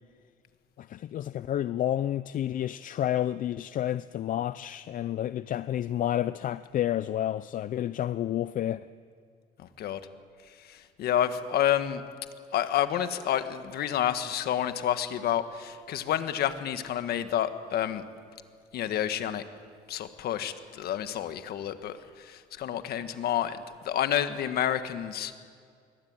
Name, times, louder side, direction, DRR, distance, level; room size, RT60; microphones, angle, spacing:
voice 1, 0.8-8.9, left 11 dB, 50° left, 0.5 m, -30 dB
voice 2, 9.6-10.0 10.6-12.0 12.5-18.0 18.7-19.4 19.9-23.6 23.8-25.3, left 10 dB, 65° left, 1.6 m, -29 dB
22.5 x 19.0 x 8.9 m
cardioid pair, 110°, 17 cm